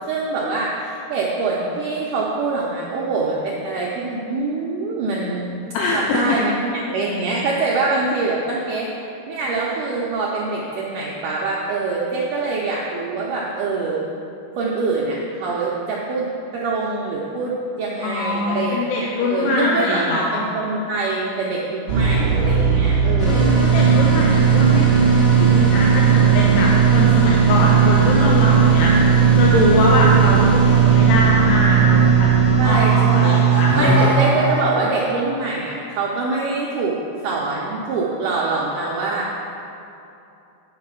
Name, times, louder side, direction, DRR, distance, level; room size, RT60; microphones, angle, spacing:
voice 1, 0.1-5.6 5.9-14.0 14.6-16.3 16.5-23.6 32.6-37.0 37.2-39.3, right 3 dB, 85° right, -4 dB, 1.8 m, -24 dB
voice 2, 5.7-6.2 18.0-20.4 23.3-34.1, left 2 dB, 85° left, -3 dB, 2.8 m, -22 dB
sound 1, 21.9-34.2, right 7 dB, 25° left, 1.6 m, -15 dB
Laughter, 32.5-35.7, right 3 dB, 70° right, 0.9 m, -29 dB
8.9 x 5.8 x 6.1 m, 2.7 s
omnidirectional pair, 4.7 m